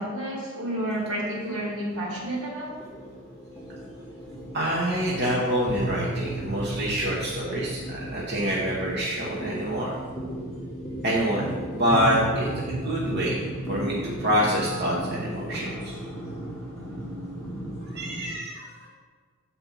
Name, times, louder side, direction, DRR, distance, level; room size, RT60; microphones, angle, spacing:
voice 1, 0.0-2.7, right 1 dB, 80° right, -2 dB, 2.1 m, -30 dB
sound 1, 1.7-18.3, right 1 dB, 5° left, 1.0 m, -35 dB
voice 2, 4.5-10.0 11.0-13.4 13.7-16.0 17.9-18.9, equal, 50° right, -5 dB, 1.0 m, -26 dB
7.0 x 4.4 x 5.4 m, 1.5 s
head